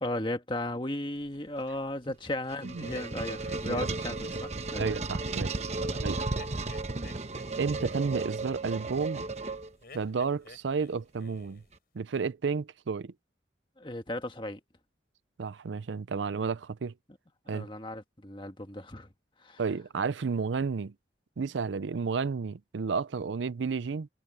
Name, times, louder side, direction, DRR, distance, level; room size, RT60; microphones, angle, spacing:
voice 1, 0.0-4.9 5.8-6.0 13.8-14.6 17.5-19.1 19.4-19.6, left 1 dB, 25° left, 1.6 m, -35 dB
sound 1, 2.3-10.0, right 3 dB, 35° right, 1.0 m, -34 dB
sound 2, 2.8-4.7 6.3-8.2 9.8-10.9 11.2-11.7, left 3 dB, 50° left, 8.0 m, -52 dB
voice 2, 4.8-5.6 6.0-6.2 7.6-9.3 9.9-11.6 11.9-13.1 15.4-16.9 17.5-17.7 19.6-20.9 21.4-24.1, right 5 dB, 80° right, 0.5 m, -32 dB
head